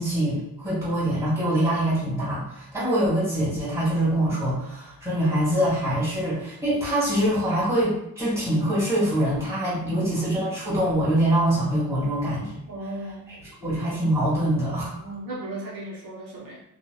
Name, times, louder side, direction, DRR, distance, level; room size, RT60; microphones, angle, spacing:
voice 1, 0.0-12.6 13.6-14.9, right 1 dB, 10° right, -9 dB, 1.5 m, -24 dB
voice 2, 12.7-13.3 14.9-16.6, right 1 dB, 75° right, -4 dB, 0.7 m, -36 dB
2.7 x 2.1 x 2.2 m, 0.82 s
cardioid pair, 120°, 34 cm